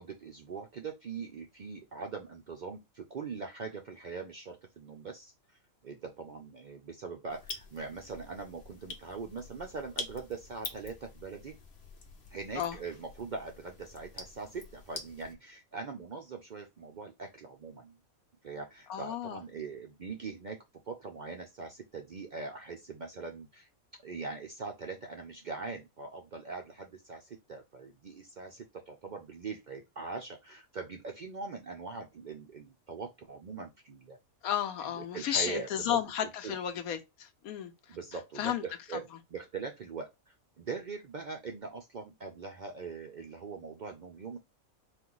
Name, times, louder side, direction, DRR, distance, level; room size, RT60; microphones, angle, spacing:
voice 1, 0.0-11.6 12.3-18.0 18.4-20.6 20.9-23.7 24.0-34.2 34.8-36.0 36.4-36.6 37.9-44.4, right 4 dB, 80° right, 0.4 m, -42 dB
sound 1, 7.3-15.4, left 3 dB, 50° left, 1.0 m, -46 dB
voice 2, 18.9-19.4 34.4-38.0 38.4-38.6, left 10 dB, 85° left, 1.2 m, -33 dB
4.4 x 2.4 x 3.8 m
omnidirectional pair, 1.5 m